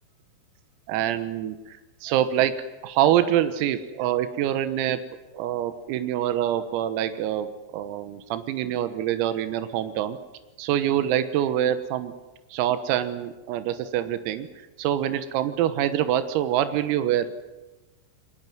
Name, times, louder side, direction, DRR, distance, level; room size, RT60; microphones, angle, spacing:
voice 1, 0.9-2.5 2.8-5.0 5.3-7.5 7.7-10.2 10.6-12.1 12.5-14.5 14.8-17.3, right 11 dB, 90° right, 11 dB, 3.9 m, -25 dB
23.0 x 20.5 x 9.3 m, 1.1 s
omnidirectional pair, 5.9 m